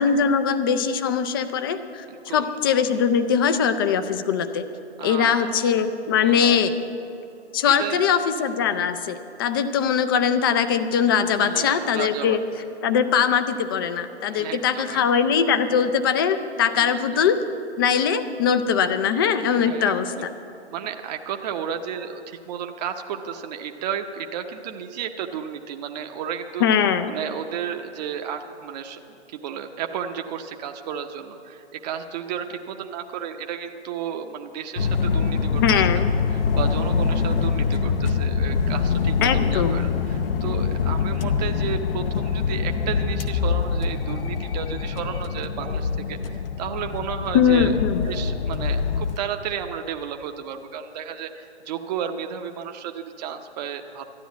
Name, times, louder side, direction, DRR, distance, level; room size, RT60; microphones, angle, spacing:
voice 1, 0.0-4.7 5.0-6.7 7.5-12.4 12.8-17.4 17.8-20.3 26.6-27.1 35.6-36.1 39.2-39.8 47.3-48.0, left 7 dB, 20° left, 10 dB, 0.4 m, -21 dB
voice 2, 2.1-2.6 5.0-5.6 6.2-6.6 7.7-8.0 11.4-12.4 14.3-15.0 16.8-17.2 19.6-20.3 20.7-26.7 27.1-29.0 29.3-35.6 36.3-47.7 48.0-54.0, right 8 dB, 40° right, 5 dB, 0.8 m, -33 dB
sound 1, 34.8-49.2, left 5 dB, 55° left, 0.8 m, -24 dB
12.5 x 10.0 x 8.3 m, 2.8 s
hypercardioid pair, 140°, 34 cm